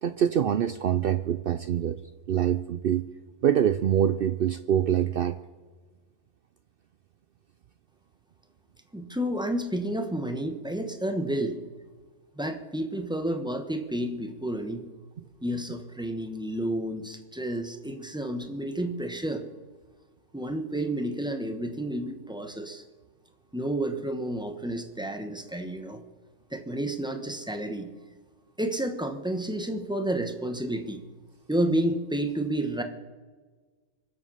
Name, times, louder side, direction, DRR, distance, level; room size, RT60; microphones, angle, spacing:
voice 1, 0.0-2.0 2.3-3.1 3.4-5.4, right 9 dB, 70° right, 12 dB, 0.5 m, -25 dB
voice 2, 8.9-11.6 12.4-14.9 15.4-19.5 20.3-22.8 23.5-26.0 26.5-27.9 28.6-31.0 31.5-32.8, right 1 dB, 5° right, 6 dB, 1.0 m, -30 dB
24.0 x 8.0 x 5.6 m, 1.4 s
omnidirectional pair, 1.5 m